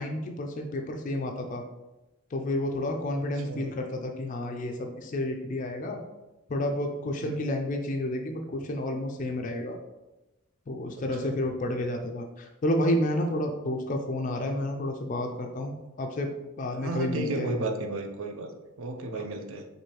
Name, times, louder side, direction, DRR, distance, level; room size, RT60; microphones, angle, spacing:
voice 1, 0.0-1.6 2.3-6.0 6.5-9.8 10.7-16.3 16.6-17.5, left 1 dB, 35° left, 3 dB, 0.3 m, -30 dB
voice 2, 16.7-18.5 18.8-19.7, right 2 dB, 75° right, 5 dB, 0.5 m, -33 dB
4.5 x 2.7 x 2.9 m, 1.0 s
head